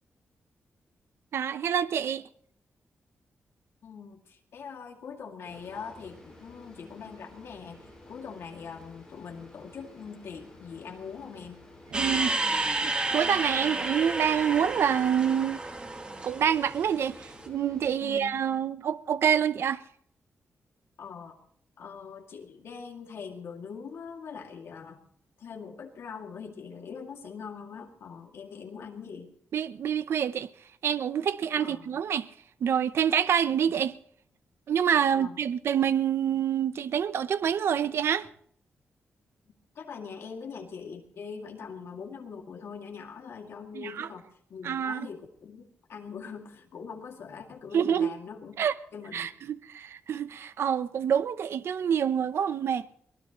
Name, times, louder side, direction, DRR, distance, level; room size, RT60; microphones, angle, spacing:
voice 1, 1.3-2.2 11.9-15.6 16.2-19.8 29.5-30.5 30.8-32.3 32.6-34.0 34.7-38.3 43.7-44.1 44.6-45.1 47.7-48.1 48.6-48.7 49.1-52.9, right 8 dB, 65° right, 0.7 m, -27 dB
voice 2, 3.8-11.6 18.0-18.4 21.0-21.4 21.8-25.0 25.4-29.3 31.6-31.9 35.1-35.4 39.7-48.6 48.9-49.3, left 6 dB, 70° left, 2.4 m, -42 dB
sound 1, 5.4-18.4, left 2 dB, 10° left, 5.7 m, -51 dB
sound 2, 11.9-17.3, right 2 dB, 20° right, 1.6 m, -31 dB
23.5 x 18.5 x 3.1 m
wide cardioid pair, 175°, 5 cm